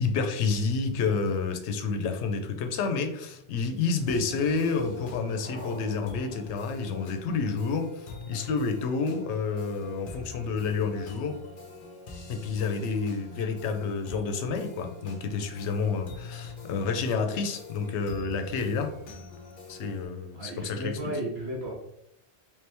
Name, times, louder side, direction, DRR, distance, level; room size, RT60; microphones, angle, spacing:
voice 1, 0.0-11.4 12.3-18.9 19.7-21.1, left 4 dB, 85° left, 5 dB, 0.9 m, -29 dB
sound 1, 4.1-20.1, left 2 dB, 55° left, 0.7 m, -45 dB
sound 2, 4.5-8.1, left 2 dB, 15° left, 0.5 m, -48 dB
voice 2, 20.3-21.7, right 1 dB, 65° right, -2 dB, 1.1 m, -34 dB
3.3 x 3.0 x 3.3 m, 0.81 s
omnidirectional pair, 1.1 m